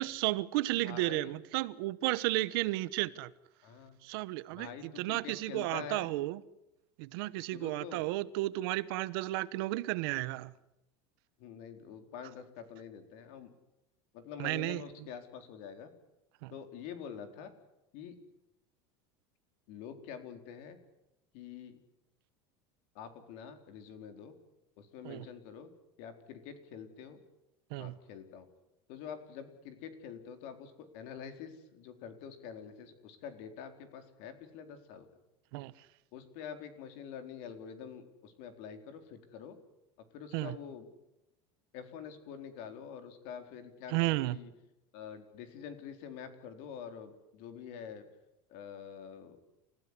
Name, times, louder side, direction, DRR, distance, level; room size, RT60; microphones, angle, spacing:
voice 1, 0.0-3.3 4.0-6.4 7.0-10.5 14.4-14.8 16.4-16.5 25.0-25.3 27.7-28.0 35.5-35.7 40.3-40.5 43.9-44.4, right 19 dB, 65° right, 1.1 m, -33 dB
voice 2, 0.8-1.3 3.6-4.0 4.5-6.1 7.4-8.1 11.4-13.5 14.1-15.9 16.5-17.5 17.9-18.2 19.7-20.8 21.3-21.8 22.9-24.3 24.8-25.7 26.0-27.2 27.8-28.5 28.9-35.1 36.1-39.6 40.1-40.9 41.7-44.5 44.9-48.1 48.5-49.4, left 7 dB, 60° left, 4.1 m, -46 dB
29.0 x 15.5 x 9.8 m
supercardioid pair, 150°, 13 cm